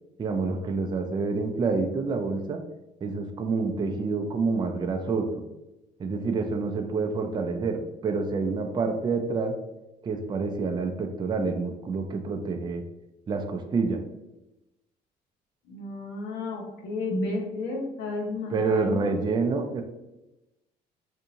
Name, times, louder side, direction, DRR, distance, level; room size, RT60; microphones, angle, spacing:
voice 1, 0.2-2.6 3.0-5.4 6.0-9.6 10.0-12.8 13.3-14.0 18.5-19.8, right 4 dB, 25° right, 4 dB, 0.4 m, -28 dB
voice 2, 15.7-19.1, left 3 dB, 85° left, 0 dB, 0.9 m, -32 dB
3.6 x 2.6 x 2.8 m, 0.97 s
cardioid pair, 110°, 17 cm